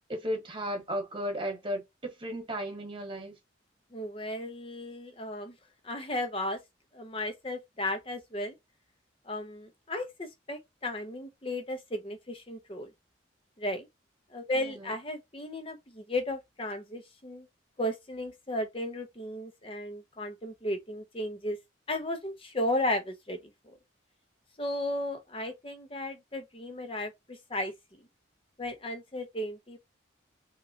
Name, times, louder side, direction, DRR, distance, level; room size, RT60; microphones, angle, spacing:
voice 1, 0.1-3.4 14.6-14.9, equal, 25° right, 1.3 m, -35 dB
voice 2, 3.9-5.5 5.8-6.6 6.9-8.5 9.3-12.9 13.6-13.9 14.3-17.5 17.8-21.6 21.9-23.4 23.6-23.7 24.6-27.7 28.6-29.8, left 1 dB, 30° left, 0.7 m, -34 dB
3.6 x 2.9 x 2.8 m
head